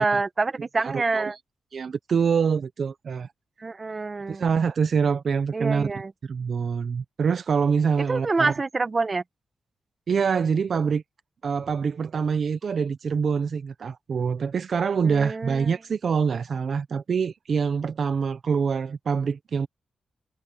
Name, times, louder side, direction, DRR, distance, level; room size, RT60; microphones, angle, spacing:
voice 1, 0.0-1.4 3.6-4.5 5.5-6.1 8.1-9.2 15.0-15.7, right 3 dB, 40° right, 1.5 m, -26 dB
voice 2, 0.8-1.2 1.7-3.3 4.3-5.9 6.3-8.5 10.1-11.0 11.4-19.7, right 6 dB, 65° right, 0.8 m, -25 dB
cardioid pair, 65°, 0 cm